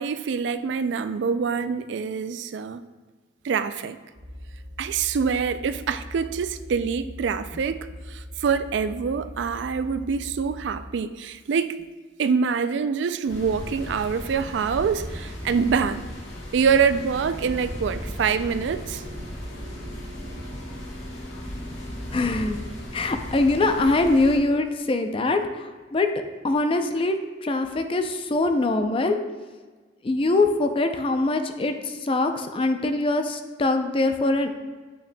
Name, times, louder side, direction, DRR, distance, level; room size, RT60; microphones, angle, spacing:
voice 1, 0.0-2.8 3.4-4.0 4.8-11.8 12.2-16.0 16.5-19.0, right 6 dB, 65° right, 0.3 m, -25 dB
sound 1, 4.1-11.0, left 1 dB, 85° right, 0.9 m, -41 dB
sound 2, 13.3-24.4, equal, 85° left, 1.6 m, -36 dB
voice 2, 22.1-22.6 22.9-26.1 26.4-27.2 27.4-29.2 30.0-34.5, left 2 dB, 30° left, 0.4 m, -23 dB
8.5 x 5.8 x 2.2 m
head